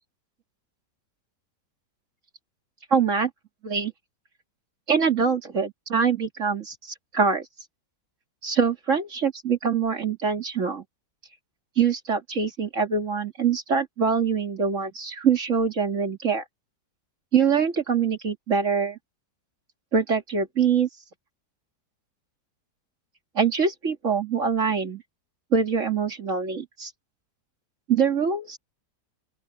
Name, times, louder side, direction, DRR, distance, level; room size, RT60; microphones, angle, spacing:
voice 1, 2.9-3.3 3.6-3.9 4.9-7.5 8.4-10.8 11.8-16.4 17.3-19.0 19.9-20.9 23.3-25.0 25.5-26.9 27.9-28.6, right 6 dB, 50° right, 2.4 m, -24 dB
open air
omnidirectional pair, 1.8 m